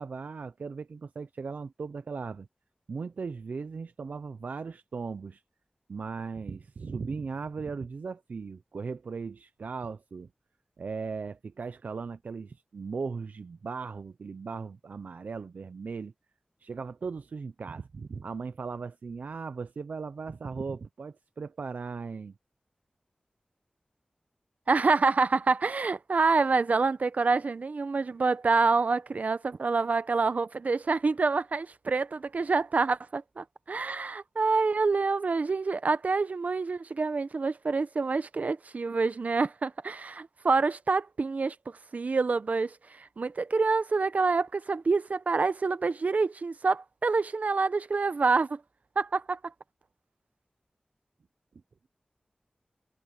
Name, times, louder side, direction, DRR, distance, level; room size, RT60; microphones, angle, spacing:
voice 1, 0.0-2.5 2.9-5.4 5.9-10.3 10.8-16.1 16.6-22.3, right 5 dB, 85° right, 0.5 m, -37 dB
voice 2, 24.7-48.6 49.0-49.5, right 4 dB, 70° right, 0.8 m, -27 dB
wide cardioid pair, 55°, 3 cm